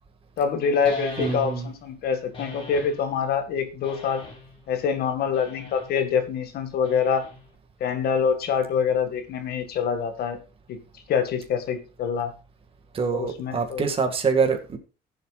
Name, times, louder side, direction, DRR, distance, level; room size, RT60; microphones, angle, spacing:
voice 1, 0.4-4.2 4.7-7.2 7.8-10.4 10.7-10.8 11.1-12.3 13.1-13.8, left 6 dB, 65° left, 7 dB, 1.9 m, -25 dB
sound 1, 0.8-1.8 2.3-3.0 3.8-4.6 5.3-5.9 6.8-7.5, left 2 dB, 30° left, 4.3 m, -38 dB
voice 2, 1.2-1.7 12.9-14.8, right 5 dB, 35° right, 4 dB, 1.9 m, -25 dB
15.5 x 7.9 x 2.4 m, 0.32 s
cardioid pair, 110°, 17 cm